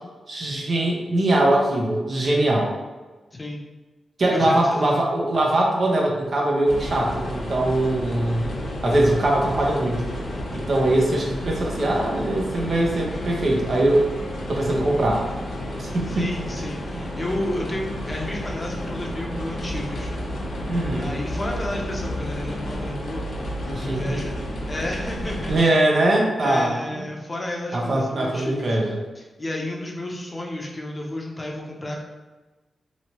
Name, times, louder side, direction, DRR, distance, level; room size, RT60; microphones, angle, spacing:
voice 1, 0.3-2.7 4.2-8.5 8.8-10.0 10.5-14.1 14.5-15.3 15.8-16.3 20.7-21.1 23.8-24.1 25.5-27.0 27.7-29.0, right 1 dB, 55° right, -1 dB, 0.7 m, -22 dB
voice 2, 3.3-3.6 4.3-5.0 16.1-20.1 21.0-23.3 23.6-25.8 26.4-28.8 29.1-32.0, left 1 dB, 25° left, -1 dB, 0.6 m, -32 dB
sound 1, 6.7-25.7, equal, 75° left, 0.8 m, -31 dB
3.0 x 2.8 x 2.9 m, 1.2 s
cardioid pair, 85°, 0 cm